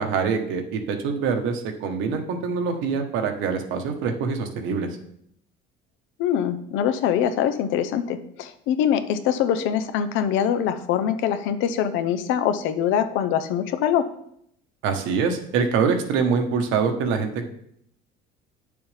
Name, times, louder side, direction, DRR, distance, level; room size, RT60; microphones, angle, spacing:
voice 1, 0.0-4.9 14.8-17.5, right 5 dB, 70° right, 5 dB, 1.4 m, -24 dB
voice 2, 6.2-14.1, left 9 dB, 65° left, 11 dB, 0.8 m, -23 dB
9.7 x 6.9 x 3.4 m, 0.72 s
cardioid pair, 145°, 21 cm